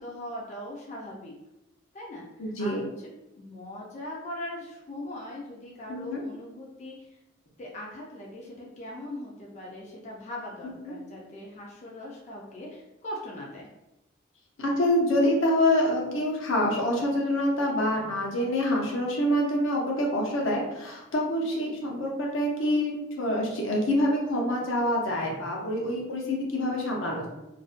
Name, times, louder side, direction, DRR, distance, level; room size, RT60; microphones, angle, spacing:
voice 1, 0.0-1.3 1.9-3.1 3.4-7.1 7.6-13.7, left 1 dB, 35° left, -3 dB, 0.4 m, -40 dB
voice 2, 2.4-2.8 5.9-6.2 10.9-11.0 14.6-27.3, left 1 dB, 85° left, -2 dB, 0.7 m, -26 dB
2.4 x 2.1 x 2.4 m, 0.94 s
head